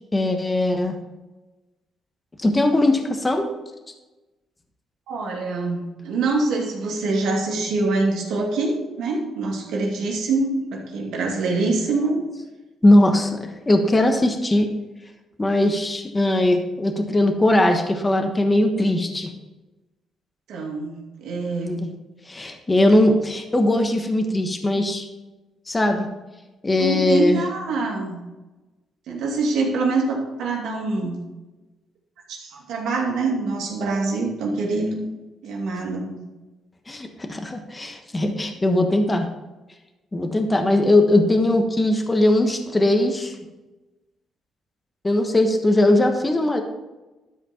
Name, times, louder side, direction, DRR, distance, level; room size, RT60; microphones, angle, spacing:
voice 1, 0.1-1.0 2.4-3.5 12.8-13.3 13.7-14.7 15.4-19.3 21.6-21.8 22.3-25.1 25.7-26.1 26.6-27.4 36.9-39.3 40.1-43.3 45.0-46.6, left 1 dB, 20° left, 5 dB, 1.2 m, -19 dB
voice 2, 5.1-12.2 20.5-21.7 26.8-28.2 29.1-31.2 32.3-35.1 35.4-36.2, right 3 dB, 80° right, -1 dB, 2.4 m, -25 dB
12.5 x 5.0 x 4.4 m, 1.1 s
cardioid pair, 90°, 0 cm